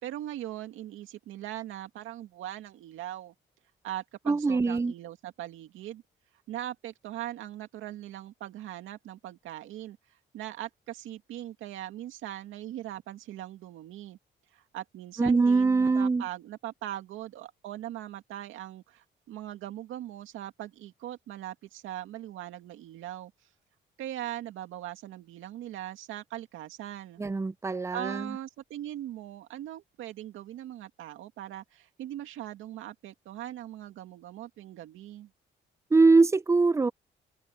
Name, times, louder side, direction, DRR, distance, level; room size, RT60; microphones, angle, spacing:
voice 1, 0.0-3.3 3.8-6.0 6.5-14.2 14.5-23.3 24.0-27.2 27.9-35.3, right 12 dB, 85° right, 2.2 m, -40 dB
voice 2, 4.3-4.9 15.2-16.2 27.2-28.4 35.9-36.9, right 3 dB, 15° right, 0.5 m, -23 dB
cardioid pair, 90°, 20 cm